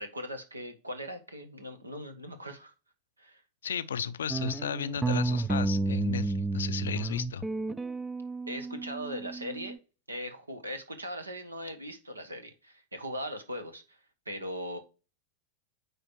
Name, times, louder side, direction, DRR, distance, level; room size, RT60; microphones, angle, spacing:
voice 1, 0.0-2.7 3.2-3.4 8.5-9.8 10.1-14.0 14.3-14.8, equal, 80° right, 1.2 m, -39 dB
voice 2, 3.6-7.5, left 8 dB, 65° left, 0.5 m, -34 dB
sound 1, 4.3-9.8, right 3 dB, 10° right, 0.4 m, -31 dB
9.2 x 3.3 x 4.5 m
figure-of-eight pair, 90°, 0 cm